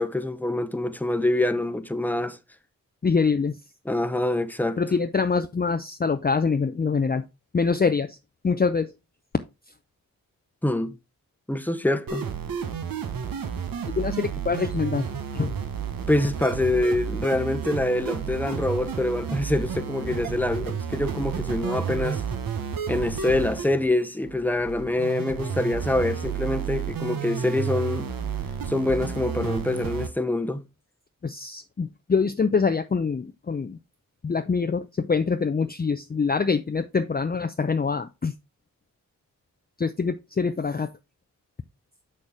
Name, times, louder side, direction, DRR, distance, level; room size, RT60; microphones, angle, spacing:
voice 1, 0.0-2.4 3.8-4.8 10.6-11.0 11.5-12.3 16.1-22.2 22.9-28.1 28.7-30.6, left 2 dB, 5° left, 0.9 m, -25 dB
voice 2, 3.0-3.5 4.8-7.2 7.5-8.2 8.4-8.9 14.0-15.1 15.3-15.5 31.2-33.8 34.2-38.3 39.8-40.9, left 5 dB, 25° left, 0.6 m, -24 dB
sound 1, 12.1-30.1, right 7 dB, 75° right, 1.2 m, -31 dB
6.5 x 6.5 x 3.5 m
cardioid pair, 45°, 35 cm